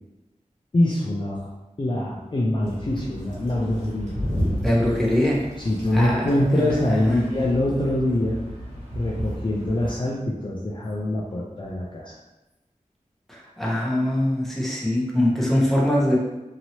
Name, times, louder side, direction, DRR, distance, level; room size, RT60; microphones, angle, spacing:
voice 1, 0.7-1.5 1.8-4.1 5.6-8.4 8.9-12.1, left 1 dB, 35° left, -4 dB, 0.4 m, -24 dB
sound 1, 2.6-10.0, equal, 60° right, 1.4 m, -33 dB
voice 2, 4.6-5.4 5.9-6.8 7.1-7.2 13.6-16.2, left 1 dB, ahead, -4 dB, 0.9 m, -22 dB
2.9 x 2.7 x 2.9 m, 1.0 s
wide cardioid pair, 60°, 14 cm